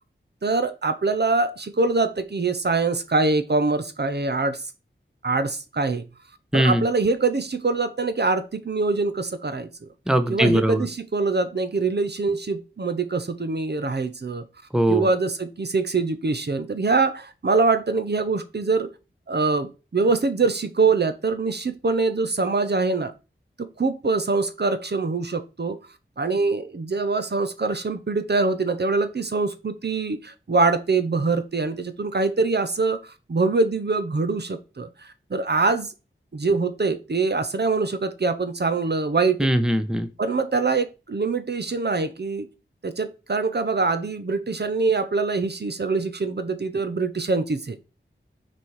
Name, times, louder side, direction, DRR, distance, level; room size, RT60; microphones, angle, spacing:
voice 1, 0.4-4.6 5.2-6.0 6.5-9.9 10.3-14.4 14.9-18.9 19.3-23.1 23.6-25.8 26.2-35.9 36.3-39.5 40.2-42.5 42.8-47.8, right 3 dB, 55° right, 10 dB, 0.8 m, -24 dB
voice 2, 10.1-10.8 14.7-15.1 39.4-40.1, equal, 5° right, 10 dB, 0.9 m, -20 dB
6.1 x 4.4 x 4.7 m, 0.29 s
wide cardioid pair, 75°, 20 cm